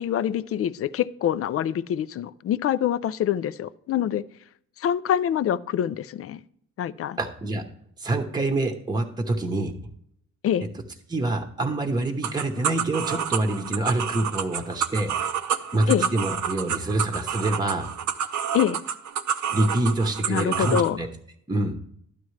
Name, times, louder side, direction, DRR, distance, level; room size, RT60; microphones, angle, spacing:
voice 1, 0.0-4.2 4.8-6.4 6.8-7.2 10.4-10.7 15.9-16.1 18.5-18.8 20.3-21.0, left 10 dB, 50° left, 16 dB, 0.4 m, -25 dB
voice 2, 7.2-7.6 8.0-9.7 11.1-15.1 15.5-17.9 19.5-21.1 21.5-21.8, right 2 dB, 15° right, 4 dB, 0.9 m, -26 dB
sound 1, 12.2-20.9, right 8 dB, 70° right, 0.8 m, -29 dB
12.0 x 9.3 x 3.2 m, 0.70 s
cardioid pair, 90°, 30 cm